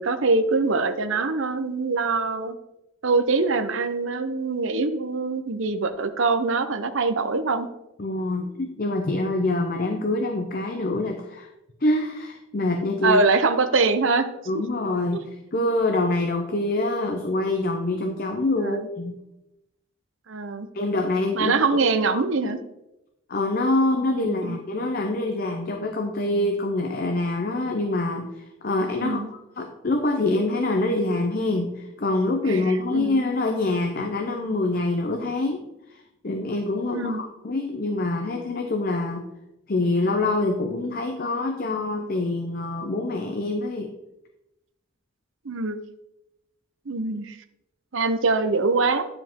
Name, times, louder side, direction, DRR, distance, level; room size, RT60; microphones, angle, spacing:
voice 1, 0.0-2.5 3.0-7.7 13.0-14.3 15.1-15.2 18.6-18.8 20.3-20.7 21.3-22.6 24.2-24.6 29.0-29.3 32.5-33.2 36.9-37.2 45.4-45.8 46.9-47.4 47.9-49.1, right 3 dB, 70° right, 8 dB, 0.7 m, -23 dB
voice 2, 8.0-11.5 11.8-13.2 14.5-19.2 20.7-21.5 22.1-22.2 23.3-29.2 29.6-35.6 35.9-39.2 39.7-43.9, left 2 dB, 45° left, 3 dB, 0.7 m, -25 dB
9.7 x 4.9 x 3.7 m, 0.89 s
head